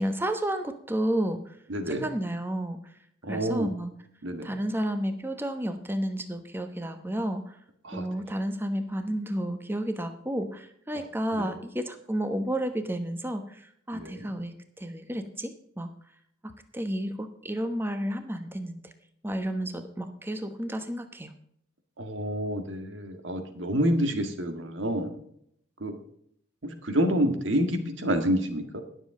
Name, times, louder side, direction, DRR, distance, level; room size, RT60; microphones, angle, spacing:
voice 1, 0.0-1.6 1.9-2.8 3.3-3.9 4.4-7.6 7.9-15.9 16.4-18.9 19.2-21.3, right 1 dB, 10° right, 8 dB, 1.0 m, -31 dB
voice 2, 1.7-2.1 3.2-3.7 4.2-4.5 7.8-8.1 11.3-11.5 13.9-14.3 22.0-25.1 25.8-26.0 26.6-28.8, equal, 80° right, 7 dB, 1.9 m, -28 dB
21.5 x 7.4 x 3.8 m, 0.70 s
head